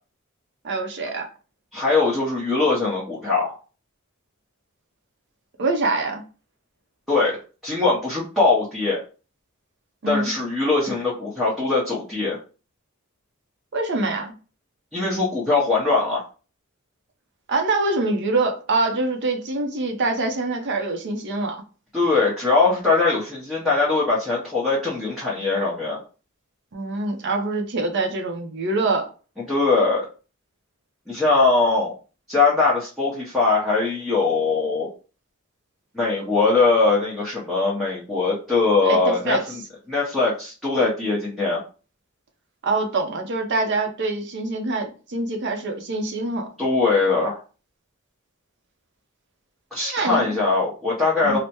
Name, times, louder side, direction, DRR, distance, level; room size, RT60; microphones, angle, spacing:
voice 1, 0.6-1.3 5.6-6.2 10.0-10.3 13.7-14.3 17.5-21.6 26.7-29.1 38.8-39.4 42.6-46.5 49.9-50.4 51.2-51.4, right 3 dB, 55° right, 0.6 m, -24 dB
voice 2, 1.7-3.6 7.1-9.0 10.1-12.4 14.9-16.2 21.9-26.0 29.5-30.1 31.1-31.9 32.3-34.9 35.9-39.6 39.9-41.6 46.6-47.4 49.7-51.4, left 3 dB, ahead, 0.7 m, -21 dB
3.3 x 2.0 x 2.8 m
head